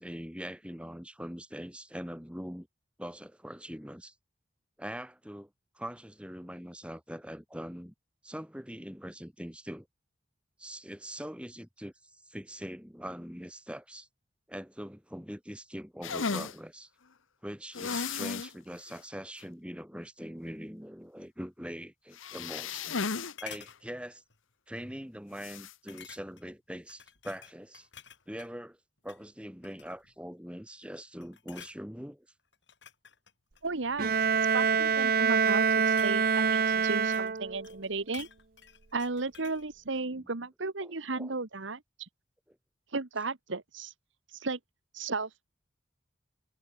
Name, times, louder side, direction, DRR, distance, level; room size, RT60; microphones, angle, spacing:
voice 1, 0.0-2.7 3.0-4.1 4.8-5.5 5.7-7.9 8.2-9.9 10.6-14.1 14.5-16.9 17.4-22.9 23.4-24.2 24.7-27.9 28.3-28.8 29.0-32.3 40.1-40.3 40.8-41.4 42.5-42.6, equal, 5° right, 4.4 m, -42 dB
sound 1, 16.0-16.6 17.7-18.5 18.9-19.0 19.4-19.5 22.1-23.3 23.7-23.8 25.4-25.7, left 5 dB, 90° left, 1.1 m, -34 dB
sound 2, 22.2-23.1 23.4-23.8 24.3-24.5 24.8-24.9 25.9-26.5 26.9-28.5 29.0-29.3 29.6-30.2 30.7-30.9 31.2-31.8 32.5-34.1 34.9-37.4 37.6-39.7 40.0-40.1, left 8 dB, 65° left, 6.5 m, -51 dB
voice 2, 33.6-34.2 34.5-38.3 38.9-42.1 42.9-43.9 44.3-44.6 44.9-45.3, right 3 dB, 75° right, 1.4 m, -34 dB
Bowed string instrument, 34.0-37.8, right 6 dB, 50° right, 0.7 m, -26 dB
head